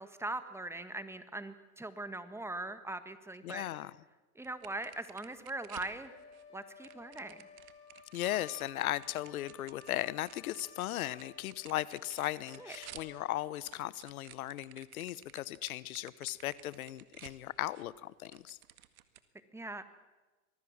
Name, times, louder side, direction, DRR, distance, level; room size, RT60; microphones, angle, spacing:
voice 1, 0.0-3.7 4.3-6.1 6.5-7.5 12.6-12.7 19.5-19.8, right 2 dB, 5° right, 11 dB, 1.7 m, -41 dB
voice 2, 3.4-3.9 8.1-18.6, left 14 dB, 80° left, 19 dB, 1.0 m, -37 dB
sound 1, 4.4-6.4 6.8-13.1 13.4-17.9 18.2-19.2, right 13 dB, 75° right, 2.0 m, -54 dB
Wind instrument woodwind instrument, 6.0-13.5, left 6 dB, 35° left, 4.5 m, -56 dB
25.5 x 19.5 x 7.4 m, 1.2 s
hypercardioid pair, 115°, 43 cm